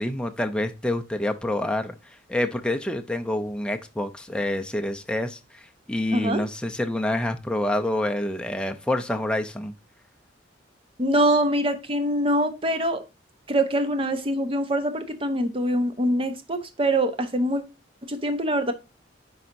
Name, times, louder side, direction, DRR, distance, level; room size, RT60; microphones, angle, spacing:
voice 1, 0.0-1.9 2.3-9.7, left 1 dB, 5° left, 5 dB, 0.5 m, -27 dB
voice 2, 6.1-6.4 11.0-13.0 13.5-17.6 18.1-18.7, right 1 dB, 30° right, 9 dB, 0.7 m, -24 dB
10.5 x 4.1 x 2.6 m, 0.28 s
head